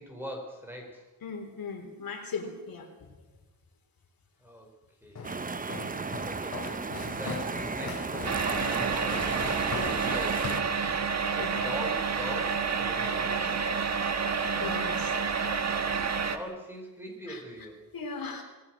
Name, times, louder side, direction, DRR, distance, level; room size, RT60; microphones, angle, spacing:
voice 1, 0.0-1.0 4.4-4.7 5.0-10.5 11.3-13.5 16.0-17.9, equal, 5° right, 1 dB, 5.1 m, -42 dB
voice 2, 1.2-3.1 7.0-7.3 9.3-9.4 11.4-11.7 14.5-15.5 17.3-17.4 17.9-18.4, left 4 dB, 70° left, 3 dB, 4.0 m, -39 dB
Walk footsteps, 5.2-11.6, left 3 dB, 45° left, 5.1 m, -39 dB
sound 1, 5.2-10.6, right 4 dB, 25° right, 0.7 m, -35 dB
sound 2, 8.2-16.4, right 5 dB, 45° right, 1.6 m, -29 dB
26.5 x 20.0 x 6.3 m, 1.1 s
wide cardioid pair, 175°, 36 cm